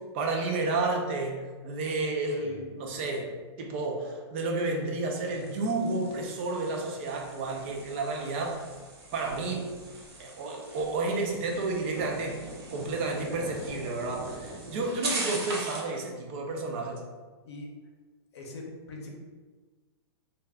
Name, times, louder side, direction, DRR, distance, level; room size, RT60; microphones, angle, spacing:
voice 1, 0.1-3.3 3.6-8.6 9.1-9.7 10.2-17.0, right 3 dB, 25° right, 1 dB, 0.3 m, -31 dB
sound 1, 5.3-16.0, right 2 dB, 65° right, 0.8 m, -40 dB
voice 2, 18.3-19.1, left 2 dB, 70° left, 1 dB, 0.7 m, -42 dB
2.3 x 2.2 x 3.3 m, 1.4 s
supercardioid pair, 170°, 14 cm